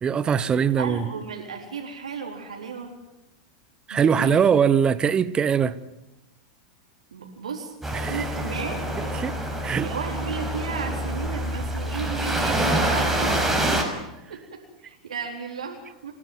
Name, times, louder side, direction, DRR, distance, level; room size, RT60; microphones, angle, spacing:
voice 1, 0.0-1.1 3.9-5.8 7.9-8.2 9.2-9.4 9.6-9.9, right 7 dB, 25° right, 1.1 m, -21 dB
voice 2, 0.5-2.9 3.9-4.4 7.1-8.8 9.8-13.6 14.0-16.1, right 6 dB, 90° right, 4.0 m, -34 dB
northsea-beach people waves plane, 7.8-13.8, right 1 dB, 5° right, 5.7 m, -26 dB
29.5 x 11.0 x 9.6 m
hypercardioid pair, 100°, 3 cm